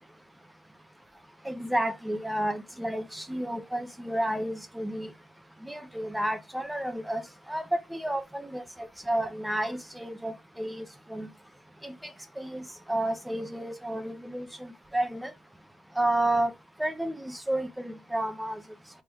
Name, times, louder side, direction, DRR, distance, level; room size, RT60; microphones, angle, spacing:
voice 1, 1.4-5.1 5.6-7.2 7.5-7.6 7.9-8.6 9.1-11.3 11.8-12.1 12.4-15.3 16.0-16.5 16.8-18.6, right 1 dB, 5° right, 0.7 m, -31 dB
3.5 x 3.3 x 2.9 m
cardioid pair, 95°, 0 cm